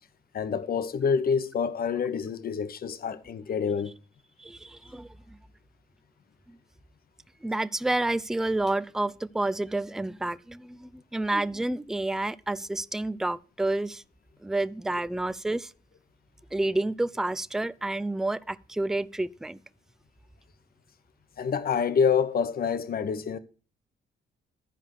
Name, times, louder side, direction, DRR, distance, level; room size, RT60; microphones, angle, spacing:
voice 1, 0.3-3.9 21.4-23.4, left 6 dB, 50° left, 1.0 m, -27 dB
voice 2, 4.4-5.1 7.4-14.0 14.4-15.7 16.5-19.6, right 2 dB, ahead, 0.4 m, -29 dB
11.5 x 5.0 x 6.4 m
cardioid pair, 90°, 20 cm